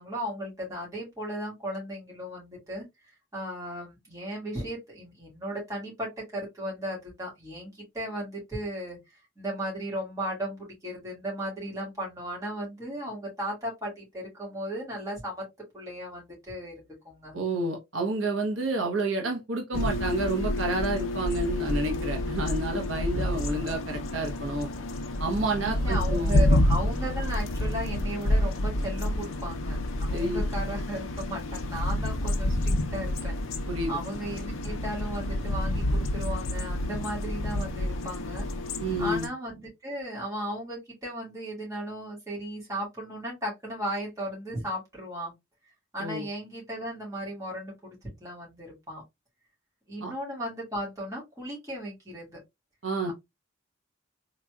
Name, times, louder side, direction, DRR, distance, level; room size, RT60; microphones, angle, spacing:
voice 1, 0.0-2.9 3.3-15.5 15.7-17.3 25.6-38.5 39.0-45.3 45.9-49.0 49.9-52.4 53.1-53.2, equal, 15° right, 1.9 m, -36 dB
voice 2, 17.3-24.7 25.2-26.5 30.1-30.4 33.7-33.9 38.8-39.3 46.0-46.2 50.0-50.1 52.8-53.1, right 2 dB, 70° right, 0.9 m, -29 dB
sound 1, 19.7-39.3, left 1 dB, 85° left, 0.6 m, -29 dB
4.0 x 3.0 x 2.3 m
head